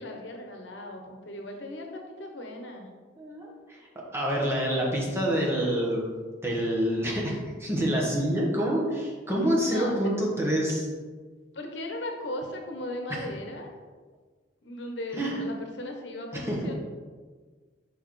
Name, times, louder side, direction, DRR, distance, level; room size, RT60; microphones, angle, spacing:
voice 1, 0.0-2.9 9.7-10.1 11.5-13.7 14.6-16.8, left 1 dB, 80° left, 3 dB, 0.9 m, -37 dB
voice 2, 3.2-3.8 4.1-6.0 6.4-10.9 13.1-13.2 15.2-15.4 16.3-16.6, equal, 15° right, -4 dB, 1.3 m, -27 dB
6.3 x 5.4 x 3.2 m, 1.5 s
head